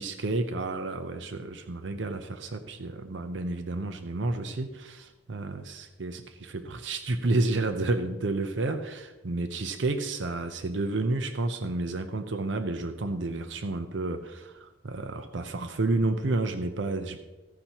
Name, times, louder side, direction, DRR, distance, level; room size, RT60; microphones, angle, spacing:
voice 1, 0.0-17.2, right 2 dB, 80° right, 8 dB, 0.7 m, -30 dB
15.5 x 10.0 x 3.0 m, 1.1 s
head